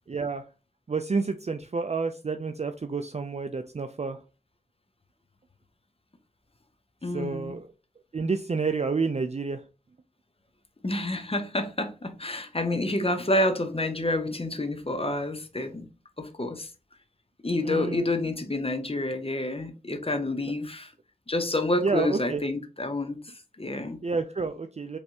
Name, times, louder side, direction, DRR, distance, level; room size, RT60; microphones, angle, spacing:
voice 1, 0.1-0.4 0.9-4.2 7.1-7.7 8.1-9.6 17.6-18.1 21.8-22.4 24.0-25.0, right 4 dB, 45° right, 0.4 m, -29 dB
voice 2, 7.0-7.6 10.8-15.9 16.2-16.7 17.4-20.9 21.3-24.0, left 1 dB, 35° left, 0.9 m, -29 dB
5.5 x 3.3 x 2.8 m
wide cardioid pair, 55°, 16 cm